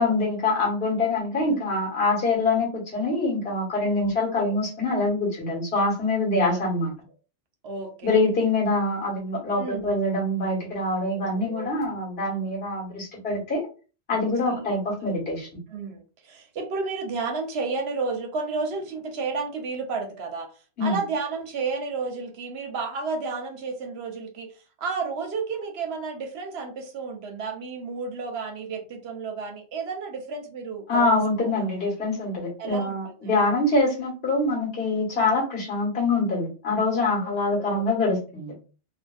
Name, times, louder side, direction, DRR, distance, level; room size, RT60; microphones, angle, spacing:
voice 1, 0.0-6.9 8.0-13.7 14.1-15.5 20.8-21.0 30.9-38.5, left 2 dB, 65° left, -3 dB, 1.5 m, -24 dB
voice 2, 3.9-4.5 6.4-6.6 7.6-8.2 9.6-10.0 11.1-11.7 14.4-14.7 15.7-20.5 20.8-24.5 24.8-31.2 31.5-31.7 32.6-33.3 35.1-35.3 37.1-37.9, right 4 dB, 75° right, 3 dB, 0.9 m, -32 dB
3.4 x 2.4 x 2.3 m, 0.35 s
omnidirectional pair, 1.1 m